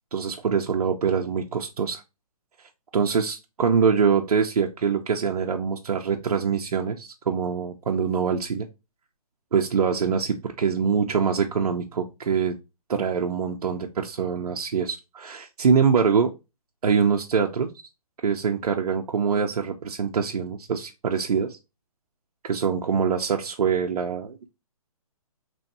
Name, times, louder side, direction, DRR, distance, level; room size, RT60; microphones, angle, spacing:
voice 1, 0.1-2.0 2.9-8.7 9.5-12.6 12.9-16.3 16.8-17.7 18.2-21.6 22.4-24.5, right 6 dB, 80° right, 2 dB, 0.7 m, -24 dB
4.3 x 3.1 x 2.8 m, 0.25 s
hypercardioid pair, 165°, 19 cm